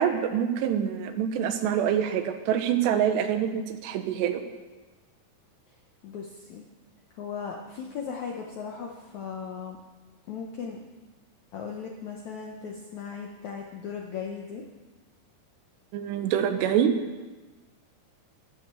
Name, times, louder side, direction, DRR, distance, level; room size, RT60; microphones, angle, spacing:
voice 1, 0.0-4.4 15.9-16.9, right 9 dB, 85° right, 8 dB, 3.2 m, -25 dB
voice 2, 6.0-6.6 7.2-9.8 10.3-10.8 11.5-14.6, left 6 dB, 75° left, 0 dB, 1.7 m, -37 dB
12.0 x 12.0 x 6.9 m, 1.2 s
omnidirectional pair, 4.8 m